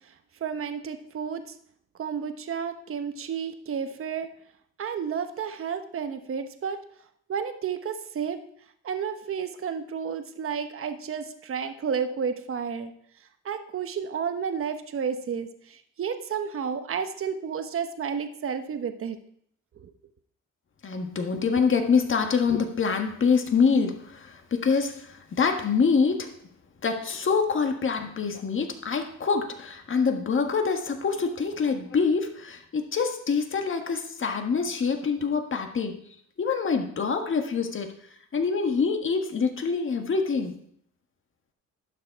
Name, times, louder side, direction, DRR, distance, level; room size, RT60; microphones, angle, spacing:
voice 1, 0.4-1.4 2.0-4.3 4.8-6.8 7.3-8.4 8.8-12.9 13.4-19.2 19.8-19.9, right 7 dB, 45° right, 8 dB, 1.1 m, -31 dB
voice 2, 20.8-26.3 26.8-36.0 36.4-37.9 38.3-40.6, left 5 dB, 40° left, 5 dB, 1.6 m, -25 dB
11.5 x 6.8 x 4.7 m, 0.67 s
cardioid pair, 90°, 30 cm